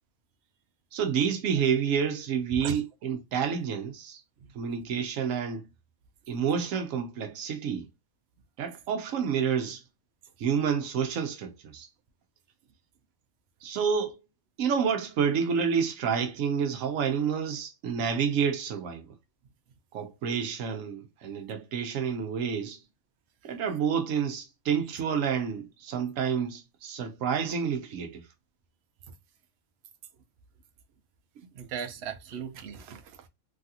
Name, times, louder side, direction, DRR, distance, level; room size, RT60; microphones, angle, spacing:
voice 1, 0.9-4.2 4.5-5.7 6.3-7.9 8.6-9.8 10.4-11.9 13.6-14.2 14.6-19.1 19.9-22.8 23.4-28.3, right 7 dB, 90° right, 1.0 m, -29 dB
voice 2, 31.5-33.3, right 7 dB, 60° right, 0.8 m, -38 dB
3.2 x 2.4 x 2.7 m
omnidirectional pair, 1.3 m